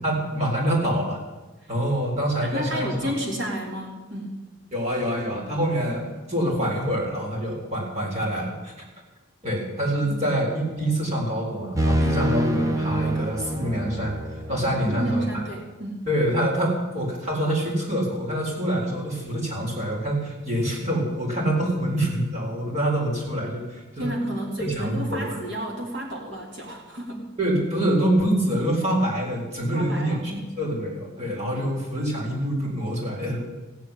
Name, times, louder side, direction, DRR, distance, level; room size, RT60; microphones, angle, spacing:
voice 1, 0.0-1.2 1.7-3.1 4.7-8.7 9.4-14.2 14.5-15.4 16.1-24.1 24.6-25.4 27.4-33.4, right 1 dB, 35° right, -2 dB, 4.1 m, -26 dB
voice 2, 2.4-4.4 10.0-10.2 14.9-16.1 24.0-27.3 29.7-30.5, equal, 60° right, -1 dB, 3.2 m, -31 dB
sound 1, 11.8-15.5, right 1 dB, 15° right, 1.0 m, -26 dB
15.0 x 7.5 x 9.9 m, 1.2 s
head